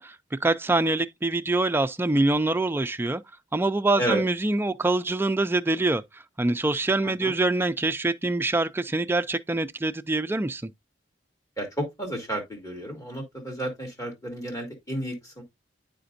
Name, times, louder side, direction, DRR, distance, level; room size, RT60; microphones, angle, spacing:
voice 1, 0.0-3.2 3.5-10.6, right 2 dB, 15° right, 0.4 m, -25 dB
voice 2, 7.0-7.3 11.6-15.4, right 1 dB, 20° left, 2.4 m, -31 dB
8.7 x 5.0 x 2.5 m
head